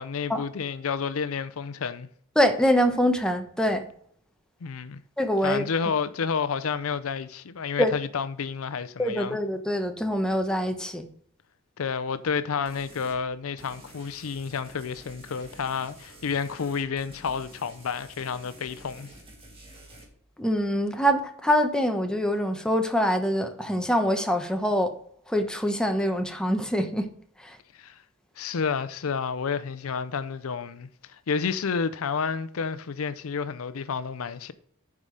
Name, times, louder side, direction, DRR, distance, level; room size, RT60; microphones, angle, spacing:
voice 1, 0.0-2.1 4.6-5.0 5.4-9.4 11.8-19.1 27.7-28.0 28.4-34.5, left 6 dB, 75° left, 0.5 m, -30 dB
voice 2, 2.4-3.8 5.2-5.6 7.8-7.9 9.0-11.1 20.4-24.9 25.3-27.1 27.4-27.6, equal, 5° left, 0.9 m, -24 dB
sound 1, 12.7-13.2 13.6-20.0, right 1 dB, 30° right, 2.5 m, -49 dB
9.6 x 4.8 x 5.0 m
head